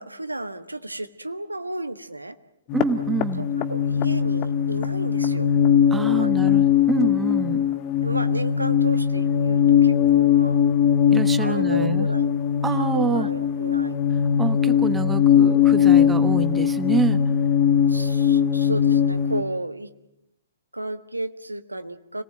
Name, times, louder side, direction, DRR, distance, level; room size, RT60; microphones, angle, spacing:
voice 1, 0.0-2.3 3.4-5.5 6.1-6.5 8.0-10.6 11.4-12.3 12.8-13.9 17.9-19.9 20.7-22.2, right 2 dB, 85° right, 11 dB, 1.4 m, -33 dB
sound 1, 2.7-19.4, left 8 dB, 30° left, 1.4 m, -20 dB
voice 2, 2.7-3.5 5.9-7.6 11.1-12.1 12.6-13.3 14.4-17.2, right 5 dB, 10° right, 13 dB, 1.2 m, -27 dB
29.5 x 18.5 x 8.9 m, 0.85 s
figure-of-eight pair, 120°, 0 cm